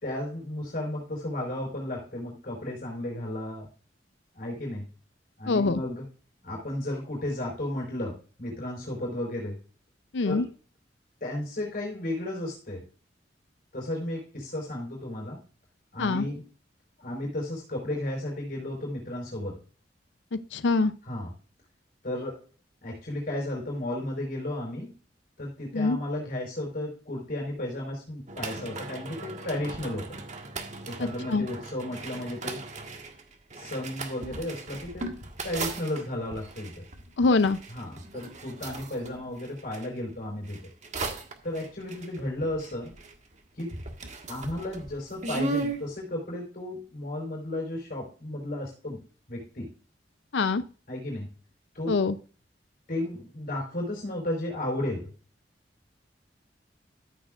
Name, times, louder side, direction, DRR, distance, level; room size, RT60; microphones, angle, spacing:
voice 1, 0.0-3.7 4.3-4.8 5.4-6.0 6.4-9.6 10.2-10.5 11.2-12.8 13.7-15.4 15.9-16.5 17.0-19.6 21.0-21.3 22.0-22.4 22.8-24.9 25.4-30.2 30.9-32.7 33.5-36.8 37.7-40.6 41.4-42.9 43.5-43.7 44.3-49.0 49.3-49.7 50.9-51.3 51.7-52.0 52.9-55.1, left 1 dB, 55° left, -1 dB, 4.3 m, -34 dB
voice 2, 5.5-5.8 10.1-10.4 16.0-16.2 20.3-20.9 25.7-26.0 31.0-31.5 37.2-37.6 50.3-50.6 51.9-52.2, left 3 dB, 85° left, 12 dB, 0.6 m, -24 dB
sound 1, 28.3-39.9 40.4-43.3 43.6-45.8, right 3 dB, 45° right, 1.5 m, -38 dB
13.5 x 8.8 x 2.4 m, 0.37 s
head